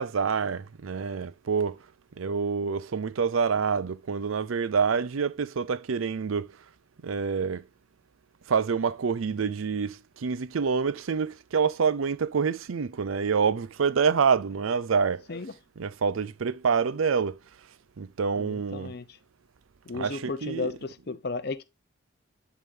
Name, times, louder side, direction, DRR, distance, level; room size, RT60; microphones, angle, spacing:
voice 1, 0.0-1.8 2.2-6.5 7.0-7.6 8.5-15.2 15.8-17.4 18.0-18.9 19.9-20.7, right 5 dB, 85° right, 0.5 m, -27 dB
voice 2, 18.4-19.1 19.9-21.6, left 3 dB, 50° left, 0.7 m, -34 dB
10.5 x 3.7 x 2.7 m
head